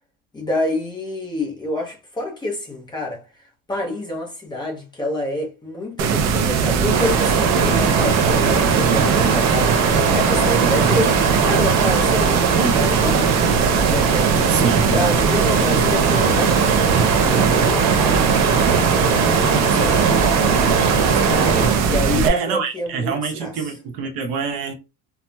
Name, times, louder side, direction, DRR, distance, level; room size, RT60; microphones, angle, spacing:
voice 1, 0.3-3.2 3.7-11.2 11.4-13.6 13.9-14.3 14.9-16.7 17.1-18.3 19.7-20.4 21.8-23.7, left 1 dB, 10° left, 0.6 m, -27 dB
sound 1, 6.0-22.3, right 6 dB, 45° right, 0.4 m, -20 dB
Stream, 6.9-21.9, right 4 dB, 85° right, 1.3 m, -21 dB
voice 2, 14.5-15.0 21.1-21.5 22.2-24.7, right 5 dB, 65° right, 0.9 m, -26 dB
4.2 x 2.1 x 2.2 m
cardioid pair, 170°, 39 cm